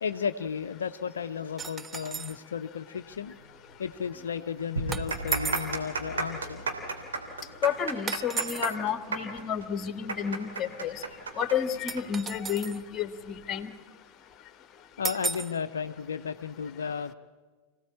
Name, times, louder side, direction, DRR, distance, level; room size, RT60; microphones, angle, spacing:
voice 1, 0.0-3.3 3.8-6.6 15.0-17.1, left 7 dB, 70° left, 9 dB, 0.6 m, -34 dB
sound 1, 1.6-2.4 4.9-5.8 8.1-8.8 11.9-12.8 15.0-15.6, right 5 dB, 20° right, 0.7 m, -35 dB
sound 2, 3.7-3.8 4.0-4.1 4.8-12.0 12.3-12.4 13.2-13.4, right 4 dB, 70° right, 3.2 m, -33 dB
sound 3, 4.8-7.6, right 2 dB, 85° right, 5.1 m, -38 dB
voice 2, 7.6-10.9 11.4-13.7, left 8 dB, 25° left, 11 dB, 1.4 m, -31 dB
25.5 x 17.0 x 8.5 m, 1.5 s
figure-of-eight pair, 90°, 0 cm